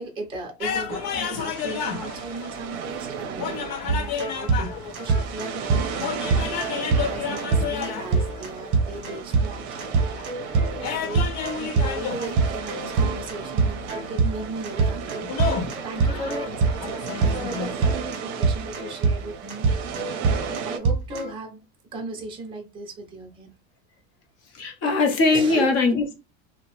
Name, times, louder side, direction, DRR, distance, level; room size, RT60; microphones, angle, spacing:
voice 1, 0.0-10.0 10.7-11.3 11.5-15.3 15.7-19.7 20.2-21.6 21.9-23.5 25.3-26.1, right 2 dB, 10° right, 0.5 m, -36 dB
sound 1, 0.6-17.8, left 8 dB, 85° left, 0.9 m, -33 dB
sound 2, 0.9-20.8, right 7 dB, 50° right, 0.6 m, -36 dB
sound 3, 3.9-21.3, right 4 dB, 35° right, 0.9 m, -25 dB
voice 2, 24.5-26.1, left 3 dB, 35° left, 0.6 m, -21 dB
2.8 x 2.0 x 2.9 m
supercardioid pair, 155°, 47 cm